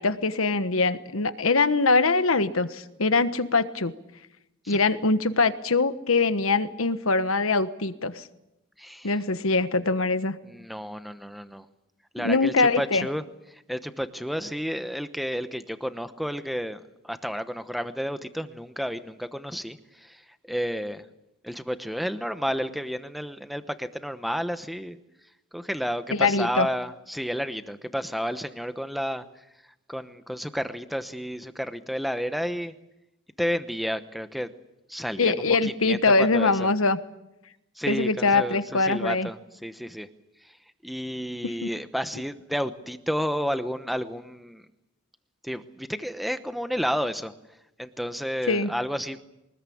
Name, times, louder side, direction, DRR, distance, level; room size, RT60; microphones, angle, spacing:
voice 1, 0.0-3.9 4.7-8.3 9.0-10.3 12.2-13.1 26.1-26.7 35.2-37.0 37.9-39.3 41.6-41.7 48.5-48.7, left 3 dB, 85° left, 11 dB, 1.3 m, -23 dB
voice 2, 8.8-9.1 10.4-11.7 12.1-13.2 13.5-21.0 21.4-25.0 25.5-29.4 29.9-32.7 33.4-34.5 34.9-36.7 37.8-40.1 40.4-40.6 40.8-44.6 45.4-47.3 47.8-49.2, equal, ahead, 10 dB, 1.0 m, -31 dB
24.0 x 20.0 x 8.6 m, 0.90 s
head